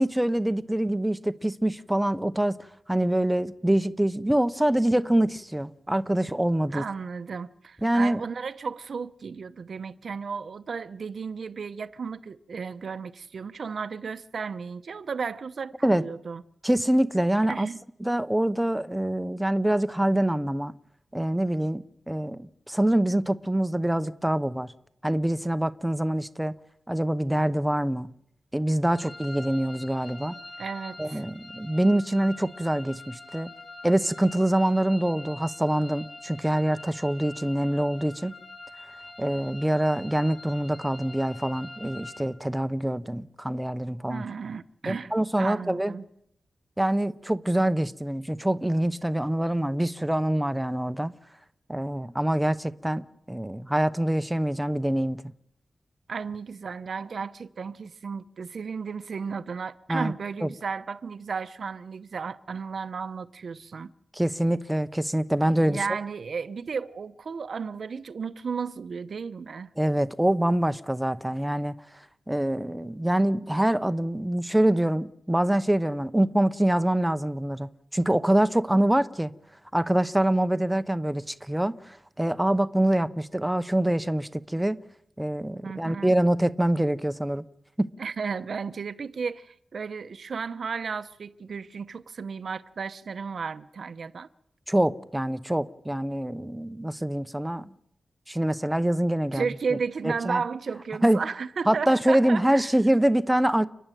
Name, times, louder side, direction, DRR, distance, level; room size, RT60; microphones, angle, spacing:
voice 1, 0.0-2.6 2.9-6.8 7.8-8.2 15.8-16.1 16.6-17.7 18.0-20.7 21.1-24.7 25.0-26.5 26.9-28.1 28.5-30.4 31.0-33.5 33.8-38.3 39.2-44.3 44.9-45.9 46.8-51.1 51.7-55.2 59.9-60.1 60.4-60.5 64.1-65.8 69.8-71.7 72.3-79.3 79.7-84.8 85.2-87.4 87.8-87.9 94.7-97.7 98.3-99.5 100.0-100.4 101.0-101.2 101.7-103.7, right 1 dB, 5° right, 0.8 m, -25 dB
voice 2, 6.7-16.4 17.5-17.8 30.6-31.3 44.1-46.1 56.1-63.9 65.5-69.7 85.6-86.1 88.0-94.3 99.3-102.7, right 5 dB, 65° right, 0.8 m, -34 dB
sound 1, 28.9-42.2, left 2 dB, 55° left, 6.5 m, -45 dB
30.0 x 10.0 x 9.1 m
wide cardioid pair, 115°, 0 cm